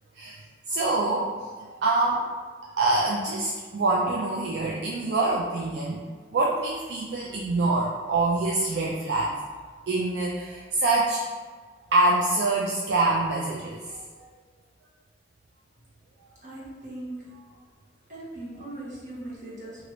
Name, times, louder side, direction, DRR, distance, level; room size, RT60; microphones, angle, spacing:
voice 1, 0.7-2.3 2.6-6.0 6.3-9.3 9.9-11.2 11.9-14.2, right 2 dB, 65° right, -3 dB, 0.3 m, -25 dB
voice 2, 16.4-17.3 18.1-19.9, right 1 dB, 45° right, -7 dB, 1.0 m, -39 dB
2.9 x 2.5 x 3.0 m, 1.5 s
head